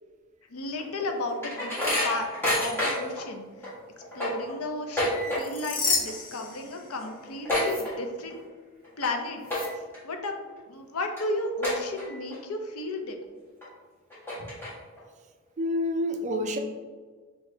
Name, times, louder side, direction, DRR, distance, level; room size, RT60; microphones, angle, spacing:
voice 1, 0.5-2.3 2.6-3.7 4.1-8.4 9.0-9.7 10.0-13.2, left 2 dB, 80° left, 4 dB, 0.7 m, -34 dB
sound 1, 0.8-3.2 3.6-3.7 4.0-5.7 6.0-6.4 6.6-6.7 7.0-8.4 8.8-9.1 9.4-10.0 10.5-10.6 11.2-11.3 11.6-12.4 12.8-12.9 13.6-13.7 14.1-15.0, left 1 dB, 10° left, 1.5 m, -29 dB
sound 2, 5.2-7.2 7.6-7.8 9.5-9.7, left 4 dB, 40° left, 0.7 m, -31 dB
voice 2, 15.6-16.6, left 1 dB, 30° right, 4 dB, 0.4 m, -28 dB
6.1 x 3.1 x 2.7 m, 1.5 s
head